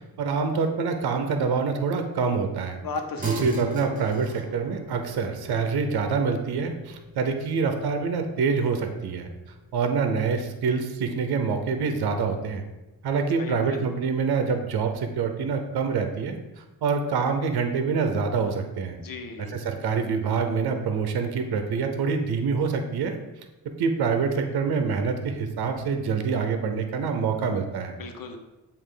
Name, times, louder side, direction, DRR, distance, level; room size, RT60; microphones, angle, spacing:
voice 1, 0.2-2.8 3.2-9.3 9.7-12.6 13.0-16.4 16.8-19.0 19.5-23.1 23.8-27.9, right 5 dB, 65° right, 6 dB, 0.8 m, -26 dB
voice 2, 2.8-3.5 13.4-13.8 19.0-19.6 28.0-28.4, left 4 dB, 55° left, 5 dB, 1.1 m, -35 dB
sound 1, 3.2-12.9, left 1 dB, 20° right, 1.4 m, -41 dB
7.3 x 2.7 x 4.9 m, 1.0 s
supercardioid pair, 50°, 41 cm